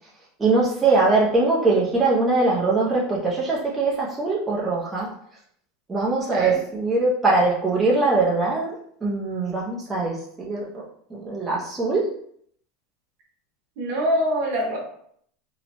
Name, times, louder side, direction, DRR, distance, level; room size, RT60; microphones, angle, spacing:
voice 1, 0.4-5.1 5.9-10.6 11.1-12.1, right 3 dB, 10° right, -6 dB, 0.4 m, -22 dB
voice 2, 6.3-6.6 13.8-14.8, equal, 55° right, -1 dB, 0.8 m, -24 dB
2.7 x 2.1 x 2.8 m, 0.66 s
supercardioid pair, 160°, 0 cm